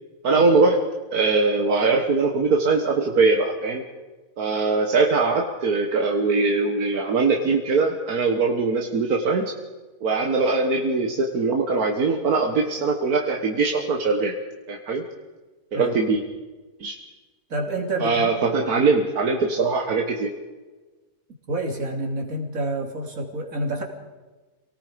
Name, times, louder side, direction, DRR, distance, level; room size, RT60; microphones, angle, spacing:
voice 1, 0.2-0.8 1.1-3.8 4.4-9.5 10.0-14.3 14.7-15.1 15.7-16.2 16.8-17.0 18.0-20.3, right 3 dB, 85° right, 2 dB, 2.0 m, -21 dB
voice 2, 17.5-18.3 21.5-23.8, right 1 dB, 65° right, 1 dB, 3.3 m, -28 dB
28.0 x 18.5 x 5.1 m, 1.3 s
omnidirectional pair, 1.5 m